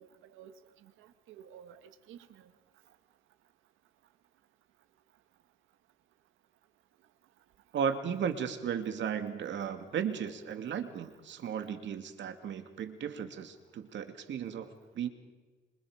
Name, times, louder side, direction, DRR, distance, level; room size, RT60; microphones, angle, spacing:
voice 1, 0.0-2.5, right 9 dB, 85° right, 1.7 m, -53 dB
voice 2, 7.7-15.1, right 7 dB, 70° right, 2.5 m, -35 dB
27.5 x 25.0 x 5.1 m
cardioid pair, 90°, 20 cm